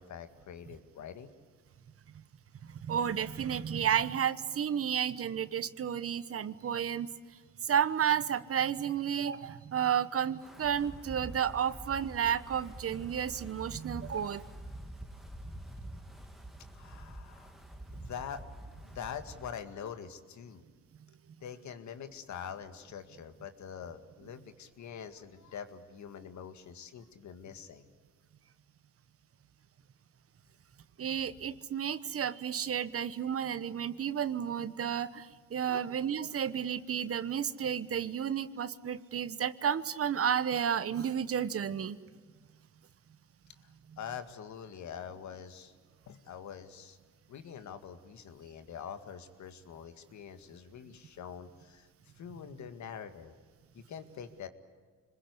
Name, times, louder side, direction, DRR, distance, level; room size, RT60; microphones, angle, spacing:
voice 1, 0.0-1.3 16.7-17.6 17.9-18.4 18.8-20.6 21.4-27.9 35.7-35.8 43.6-43.7 44.0-45.7 46.1-47.0 47.3-51.9 52.2-53.4 53.7-54.5, left 7 dB, 70° left, 9 dB, 2.0 m, -45 dB
voice 2, 2.7-7.1 7.6-14.4 31.0-42.0, right 8 dB, 50° right, 15 dB, 1.1 m, -32 dB
Wind, 10.4-19.6, right 1 dB, ahead, 2.2 m, -47 dB
26.5 x 21.0 x 9.8 m, 1.5 s
cardioid pair, 90°, 30 cm